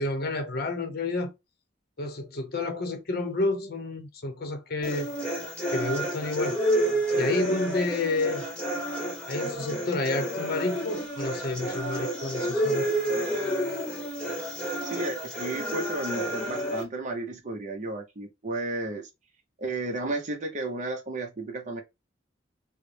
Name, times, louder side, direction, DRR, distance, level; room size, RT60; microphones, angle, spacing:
voice 1, 0.0-1.3 2.0-5.1 5.7-6.6 7.2-8.4 9.3-12.9, left 2 dB, 55° left, 0.7 m, -30 dB
sound 1, 4.8-16.8, right 1 dB, 5° left, 1.2 m, -30 dB
voice 2, 14.8-19.1 19.6-21.8, right 2 dB, 40° right, 0.7 m, -33 dB
4.0 x 2.1 x 3.2 m
head